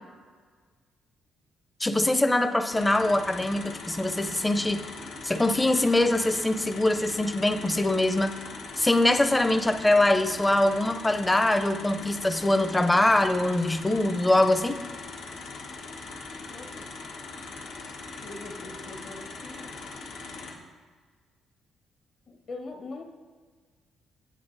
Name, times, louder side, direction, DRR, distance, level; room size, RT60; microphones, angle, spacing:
voice 1, 1.8-4.8 5.2-8.4 8.8-14.8, left 1 dB, 15° left, 10 dB, 0.6 m, -23 dB
sound 1, 2.7-20.5, left 3 dB, 85° left, 1.4 m, -41 dB
voice 2, 16.5-16.9 18.2-19.7 22.3-23.0, left 3 dB, 60° left, 3 dB, 1.4 m, -42 dB
9.2 x 8.2 x 4.0 m, 1.5 s
cardioid pair, 90°, 0 cm